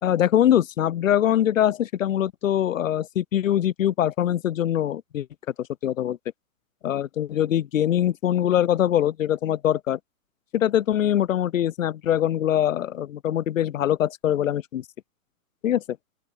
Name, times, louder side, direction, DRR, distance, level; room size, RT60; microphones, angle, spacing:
voice 1, 0.0-5.3 5.8-6.2 6.8-10.0 10.5-14.8 15.6-15.8, left 11 dB, 60° left, 2.9 m, -23 dB
open air
hypercardioid pair, 140°, 44 cm